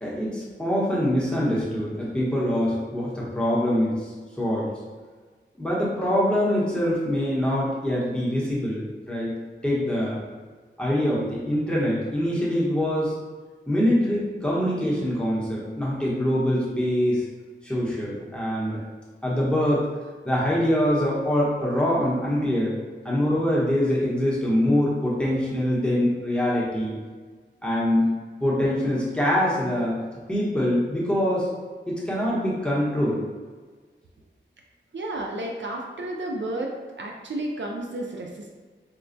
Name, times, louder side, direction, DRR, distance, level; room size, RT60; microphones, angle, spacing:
voice 1, 0.0-3.9 4.4-4.7 5.6-9.4 9.6-10.2 10.8-13.1 13.7-17.2 17.6-18.8 19.2-19.8 20.2-22.7 23.0-27.0 27.6-28.1 28.4-30.0 30.3-31.5 31.9-33.2, equal, 5° left, -7 dB, 0.9 m, -24 dB
voice 2, 34.9-38.5, right 1 dB, 70° right, -1 dB, 0.4 m, -32 dB
4.3 x 2.2 x 2.5 m, 1.4 s
wide cardioid pair, 75°, 20 cm